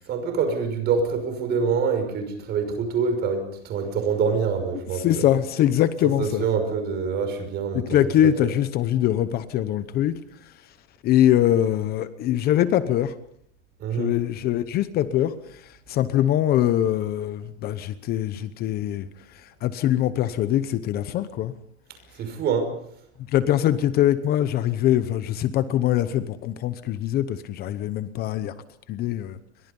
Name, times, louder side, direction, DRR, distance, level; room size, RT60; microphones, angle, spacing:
voice 1, 0.1-5.2 6.2-7.9 8.2-8.5 13.8-14.1 22.2-22.7, right 5 dB, 30° right, 5.8 m, -25 dB
voice 2, 4.9-6.4 7.7-10.2 11.0-13.1 14.0-19.1 19.6-21.5 23.3-28.5 28.9-29.4, left 12 dB, 25° left, 0.9 m, -23 dB
29.5 x 24.0 x 5.4 m
supercardioid pair, 165°, 35 cm